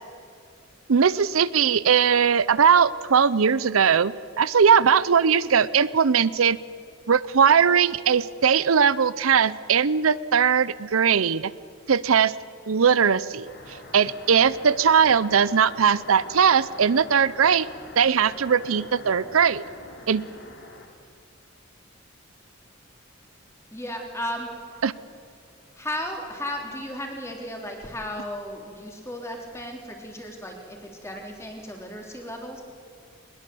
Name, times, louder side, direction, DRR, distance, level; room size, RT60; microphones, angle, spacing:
voice 1, 0.9-6.6 7.1-11.5 11.9-12.3 12.7-13.5 13.9-17.7 18.0-19.6 20.1-20.2 24.8-24.9, right 7 dB, 85° right, 18 dB, 0.6 m, -20 dB
sound 1, 13.4-20.9, left 2 dB, 60° left, 3.2 m, -44 dB
voice 2, 23.7-24.8 25.8-32.6, left 1 dB, 15° left, 2 dB, 3.4 m, -35 dB
21.5 x 20.5 x 7.8 m, 2.3 s
head